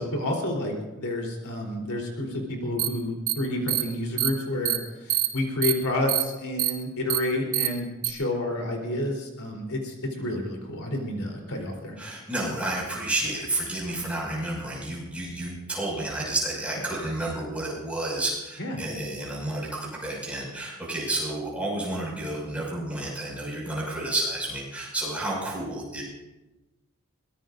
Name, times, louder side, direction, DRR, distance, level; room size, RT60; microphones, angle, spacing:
voice 1, 0.0-11.9 18.6-18.8, left 1 dB, 75° left, 0 dB, 3.7 m, -30 dB
sound 1, 2.8-2.9 3.3-3.4 3.7-3.8 4.2-4.3 4.6-4.8 5.1-5.3 5.6-5.7 6.1-6.2 6.6-6.7 7.1-7.2 7.5-7.7 8.0-8.1, right 14 dB, 75° right, 1.4 m, -24 dB
voice 2, 12.0-26.0, right 1 dB, 5° right, -5 dB, 5.9 m, -31 dB
23.0 x 20.0 x 2.6 m, 1.1 s
head